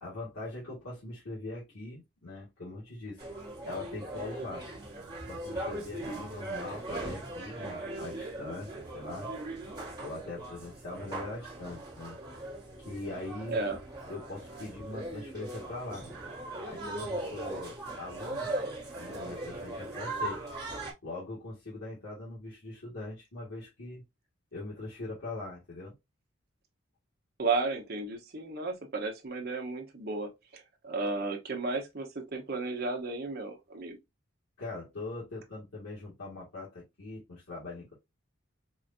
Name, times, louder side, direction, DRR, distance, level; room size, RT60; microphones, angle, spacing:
voice 1, 0.0-3.2 3.6-4.6 5.3-9.3 10.0-12.2 12.8-13.6 14.1-16.1 16.6-18.5 18.9-20.4 21.0-24.0 24.5-25.9 34.6-38.0, left 2 dB, 85° left, 1.8 m, -42 dB
sound 1, 3.2-20.9, right 2 dB, 20° right, 1.5 m, -39 dB
voice 2, 13.5-13.8 27.4-34.0, right 3 dB, 45° right, 0.9 m, -34 dB
4.8 x 2.5 x 2.6 m
head